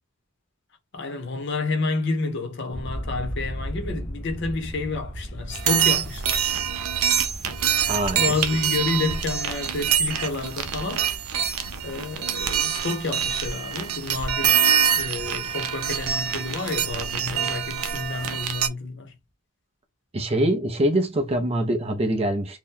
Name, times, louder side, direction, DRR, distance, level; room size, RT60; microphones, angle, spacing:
voice 1, 0.9-6.5 7.8-11.1 11.8-19.1, left 3 dB, 50° left, 0.7 m, -30 dB
sound 1, 2.7-16.3, equal, 5° left, 0.7 m, -38 dB
sound 2, 5.5-18.7, right 8 dB, 85° right, 0.5 m, -25 dB
voice 2, 7.9-8.4 20.1-22.6, right 1 dB, 25° right, 0.4 m, -24 dB
2.8 x 2.1 x 3.6 m
head